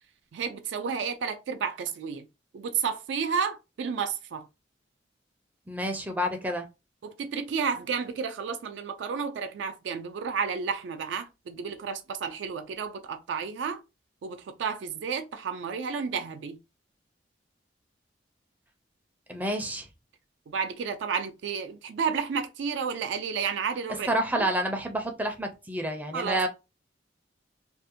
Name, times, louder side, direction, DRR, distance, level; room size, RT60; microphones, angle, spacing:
voice 1, 0.3-2.3 2.5-4.5 7.0-13.8 14.2-16.6 20.5-24.5 26.1-26.5, right 6 dB, 80° right, 0.3 m, -31 dB
voice 2, 5.7-6.7 19.3-19.9 24.1-26.5, right 1 dB, 10° right, 0.4 m, -29 dB
2.5 x 2.0 x 2.7 m
head